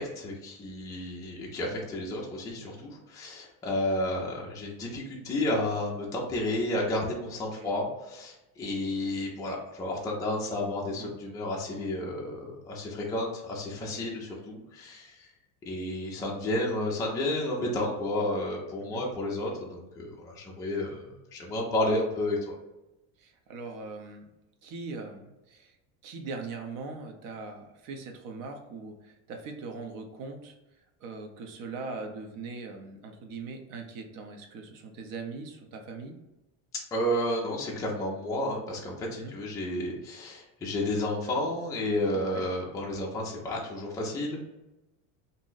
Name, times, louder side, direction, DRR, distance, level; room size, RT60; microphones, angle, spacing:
voice 1, 0.0-15.3 15.7-22.6 36.9-44.4, left 1 dB, 10° left, -3 dB, 0.3 m, -31 dB
voice 2, 10.8-11.2 13.8-14.1 18.8-19.0 23.2-24.3 24.6-25.7 26.0-30.6 31.0-36.2 39.1-39.3 42.1-42.4, right 4 dB, 50° right, 4 dB, 0.6 m, -41 dB
2.6 x 2.0 x 3.7 m, 0.97 s
cardioid pair, 145°, 42 cm